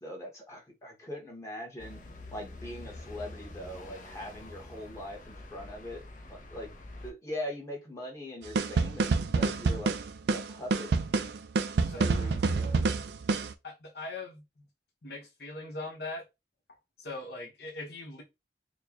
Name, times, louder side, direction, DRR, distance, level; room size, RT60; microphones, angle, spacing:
voice 1, 0.0-2.0 2.3-6.0 6.3-6.7 7.0-9.9 10.3-10.9 12.0-12.9, left 1 dB, 15° left, 1.1 m, -41 dB
sound 1, 1.8-7.1, left 2 dB, 45° left, 0.6 m, -46 dB
sound 2, 8.6-13.5, right 4 dB, 70° right, 0.4 m, -27 dB
voice 2, 11.9-12.4 13.6-14.7 15.0-16.2 17.0-18.2, left 2 dB, 65° left, 1.2 m, -41 dB
4.4 x 2.2 x 2.9 m
head